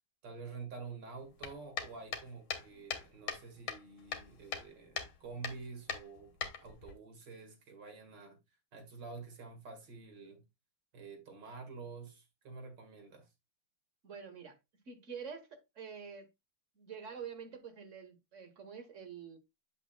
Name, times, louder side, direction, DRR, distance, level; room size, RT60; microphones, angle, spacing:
voice 1, 0.2-6.4 6.6-8.4 8.7-10.4 10.9-13.3, right 4 dB, 60° right, 2.5 m, -48 dB
sound 1, 1.4-3.4 3.7-4.7 5.0-5.1 5.4-5.6 5.9-6.9, left 6 dB, 90° left, 2.1 m, -39 dB
voice 2, 14.0-14.6 14.9-16.3 16.8-19.4, right 6 dB, 40° right, 1.4 m, -47 dB
8.3 x 6.9 x 2.2 m
omnidirectional pair, 2.2 m